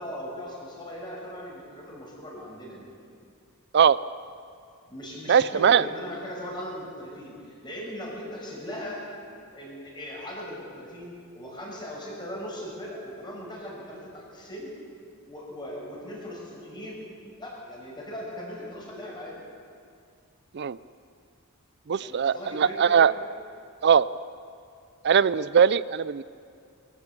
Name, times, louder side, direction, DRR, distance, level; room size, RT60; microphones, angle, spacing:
voice 1, 0.0-2.9 4.9-9.1 9.5-14.7 15.3-17.0 17.4-19.4 22.0-23.0, equal, 20° left, -3 dB, 6.4 m, -39 dB
voice 2, 5.3-5.8 20.5-20.8 21.9-23.1 23.8-24.1 25.0-26.2, right 7 dB, 50° right, 18 dB, 0.4 m, -20 dB
24.0 x 14.0 x 8.4 m, 2.3 s
head